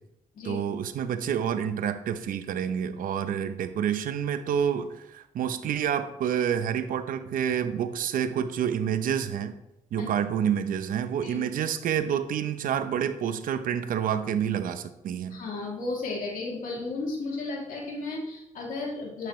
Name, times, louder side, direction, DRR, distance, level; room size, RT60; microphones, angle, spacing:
voice 1, 0.4-9.5 9.9-15.4, right 8 dB, 85° right, 11 dB, 0.8 m, -28 dB
voice 2, 15.3-19.3, left 3 dB, 80° left, -2 dB, 2.8 m, -34 dB
11.5 x 8.0 x 3.2 m, 0.87 s
cardioid pair, 75°, 14 cm